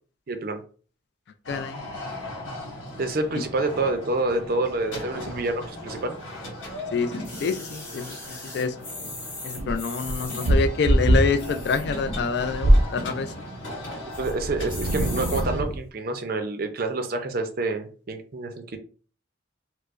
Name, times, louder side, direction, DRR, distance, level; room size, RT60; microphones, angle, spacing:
voice 1, 0.3-0.6 3.0-6.1 8.1-8.2 14.2-18.8, right 2 dB, 50° right, 0.4 m, -28 dB
sound 1, 1.4-15.6, left 1 dB, 75° left, 1.5 m, -38 dB
voice 2, 1.5-1.8 6.9-8.7 9.4-13.3, left 5 dB, 55° left, 0.3 m, -27 dB
sound 2, 7.2-10.5 11.3-12.0 12.5-12.6 12.7-12.8 13.2-13.6 14.1-14.3 14.7-15.4 16.1-16.2, left 2 dB, 15° left, 1.2 m, -39 dB
sound 3, 9.6-13.0 14.1-15.9, right 1 dB, 90° right, 0.7 m, -23 dB
4.5 x 2.0 x 2.4 m
head